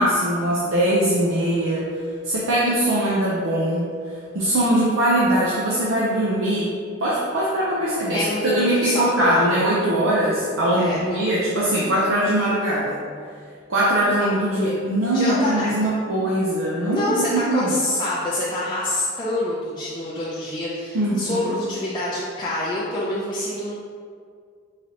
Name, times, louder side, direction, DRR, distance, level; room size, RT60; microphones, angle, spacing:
voice 1, 0.0-1.9 2.2-3.9 4.3-6.7 7.0-13.0 13.7-17.7 20.9-21.5, right 1 dB, 75° right, -7 dB, 0.6 m, -21 dB
voice 2, 8.1-9.7 10.7-11.2 15.1-15.9 16.9-23.7, left 1 dB, 20° left, -8 dB, 0.4 m, -26 dB
3.9 x 3.2 x 2.8 m, 2.1 s
head